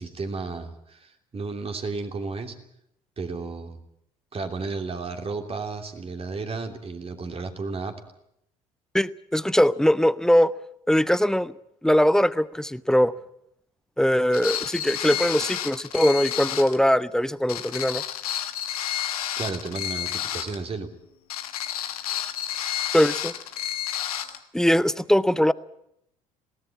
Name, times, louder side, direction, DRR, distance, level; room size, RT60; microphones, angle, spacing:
voice 1, 0.0-2.6 3.2-3.8 4.3-8.0 19.3-20.9, right 4 dB, 30° right, 5 dB, 3.1 m, -33 dB
voice 2, 8.9-10.5 10.9-11.5 11.8-13.1 14.0-18.0 22.9-23.3 24.5-25.5, equal, 5° left, 17 dB, 0.8 m, -21 dB
sound 1, 14.3-16.8 17.5-20.6 21.3-24.4, left 11 dB, 80° left, 1.5 m, -30 dB
21.0 x 18.0 x 8.6 m, 0.77 s
hypercardioid pair, 60°, 18 cm